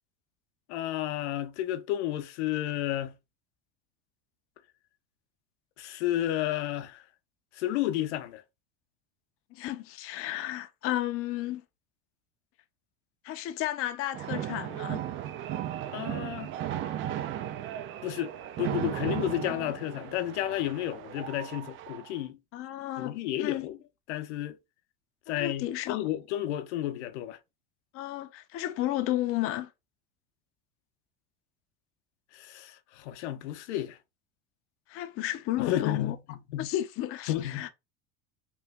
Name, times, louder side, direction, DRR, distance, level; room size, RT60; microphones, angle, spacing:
voice 1, 0.7-3.2 5.8-7.0 7.5-8.4 15.9-16.5 18.0-22.4 23.0-23.8 24.1-24.6 25.3-27.4 32.3-34.0 35.6-36.7 37.3-37.7, left 13 dB, 80° left, 0.6 m, -32 dB
voice 2, 9.5-11.6 13.2-15.0 19.4-19.7 22.5-23.7 25.3-26.0 27.9-29.7 34.9-36.2 36.6-37.7, left 14 dB, 40° left, 0.5 m, -33 dB
sound 1, 14.1-22.2, right 11 dB, 40° right, 0.4 m, -36 dB
3.0 x 2.3 x 3.3 m
supercardioid pair, 95°, 34 cm